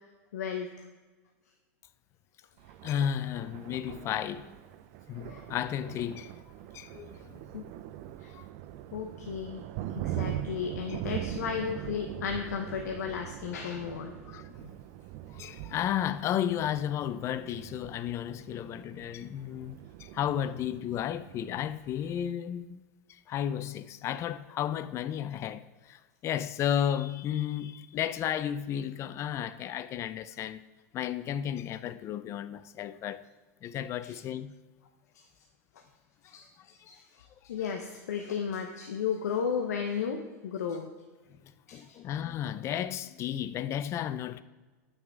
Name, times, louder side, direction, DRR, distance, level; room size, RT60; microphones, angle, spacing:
voice 1, 0.3-0.7 5.2-5.4 7.5-7.6 8.2-8.3 8.9-9.6 9.9-14.1 14.5-14.7 34.0-34.1 36.3-36.4 36.9-37.0 37.4-40.9 41.7-41.8, left 7 dB, 85° left, 0.9 m, -34 dB
Thunder, 2.6-22.3, right 12 dB, 55° right, 0.5 m, -42 dB
voice 2, 2.8-4.5 5.1-6.3 6.7-7.4 8.3-8.5 10.1-10.2 14.3-14.5 15.3-22.8 23.1-30.6 30.9-33.2 33.6-34.5 36.2-36.4 41.7-44.4, left 10 dB, 35° left, 0.4 m, -33 dB
8.8 x 6.3 x 4.7 m
hypercardioid pair, 120°, 9 cm